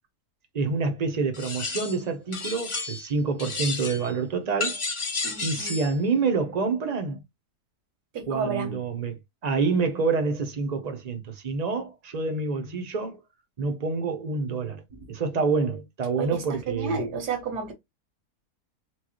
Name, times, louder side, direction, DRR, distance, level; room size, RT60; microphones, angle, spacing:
voice 1, 0.5-4.8 5.4-7.2 8.2-13.2 13.6-14.8 15.1-17.0, right 4 dB, 45° right, 0.5 m, -27 dB
sound 1, 1.3-2.0 2.3-3.1 3.4-4.1 4.6-5.9, left 3 dB, 50° left, 0.3 m, -32 dB
voice 2, 5.2-5.8 8.1-8.8 16.2-17.7, right 5 dB, 85° right, 1.6 m, -31 dB
4.4 x 2.3 x 3.0 m
omnidirectional pair, 1.7 m